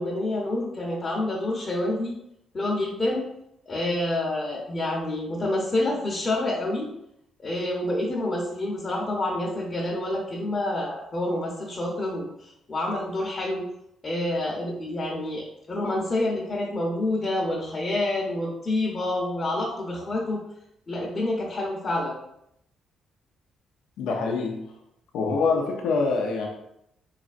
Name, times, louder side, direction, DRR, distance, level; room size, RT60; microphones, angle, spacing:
voice 1, 0.0-2.2 2.5-3.3 3.7-6.9 7.4-13.7 14.0-20.4 20.9-22.1, left 1 dB, 35° left, -3 dB, 0.8 m, -28 dB
voice 2, 24.0-24.6 25.1-26.5, left 4 dB, 85° left, 0 dB, 0.6 m, -25 dB
3.8 x 3.3 x 2.5 m, 0.78 s
cardioid pair, 90°, 0 cm